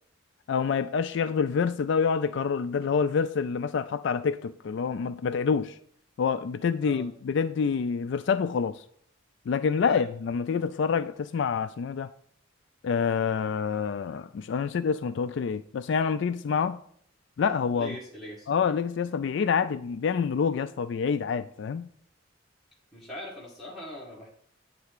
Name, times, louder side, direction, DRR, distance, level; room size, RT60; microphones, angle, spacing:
voice 1, 0.5-5.8 6.2-8.8 9.5-12.1 12.8-16.8 17.4-18.0 18.5-21.9, left 6 dB, 60° left, 0.3 m, -27 dB
voice 2, 17.7-18.5 22.9-24.3, equal, ahead, 1.5 m, -41 dB
9.5 x 3.4 x 6.6 m
head